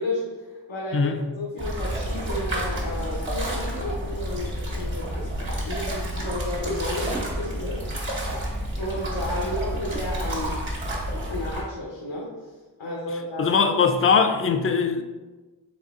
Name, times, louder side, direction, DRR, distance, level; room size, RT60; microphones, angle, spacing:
voice 1, 0.0-7.8 8.8-10.6 11.2-12.3 12.8-13.8, left 1 dB, 90° left, -5 dB, 1.0 m, -32 dB
sound 1, 1.6-11.6, equal, 80° right, 1.2 m, -30 dB
voice 2, 13.4-15.0, left 5 dB, 30° left, 8 dB, 0.4 m, -20 dB
4.1 x 3.4 x 3.6 m, 1.2 s
wide cardioid pair, 55°, 46 cm